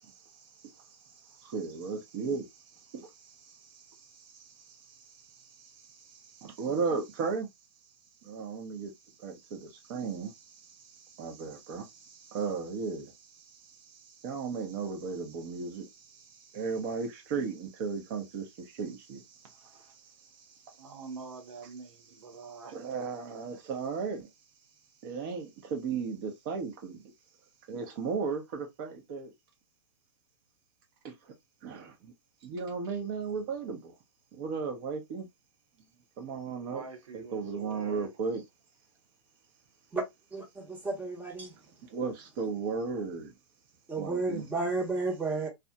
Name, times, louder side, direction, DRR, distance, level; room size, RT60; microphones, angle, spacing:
voice 1, 0.0-7.5 8.2-8.9 9.2-19.7 20.0-20.9 22.7-24.3 25.0-27.0 27.7-29.3 31.0-31.3 31.6-32.1 32.4-33.9 34.3-35.3 36.2-36.8 37.1-38.4 41.9-43.3 44.0-44.4, right 5 dB, 45° right, 0.9 m, -36 dB
voice 2, 19.5-19.9 20.7-22.8 36.6-38.1, right 4 dB, 80° right, 0.9 m, -46 dB
voice 3, 40.3-41.6 43.9-45.5, right 3 dB, 10° right, 1.0 m, -32 dB
2.8 x 2.3 x 2.2 m
hypercardioid pair, 130°, 16 cm